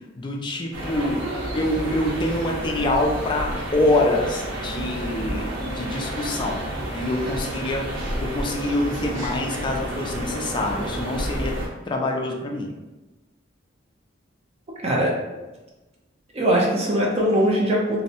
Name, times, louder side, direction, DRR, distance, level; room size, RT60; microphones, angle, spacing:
voice 1, 0.2-6.6 6.9-11.6 11.9-12.8, left 1 dB, 25° left, 1 dB, 0.3 m, -25 dB
sound 1, 0.7-11.7, right 1 dB, 80° right, 0.8 m, -30 dB
voice 2, 14.8-15.1 16.3-18.0, equal, 35° right, -2 dB, 0.5 m, -21 dB
2.6 x 2.1 x 2.8 m, 1.1 s
head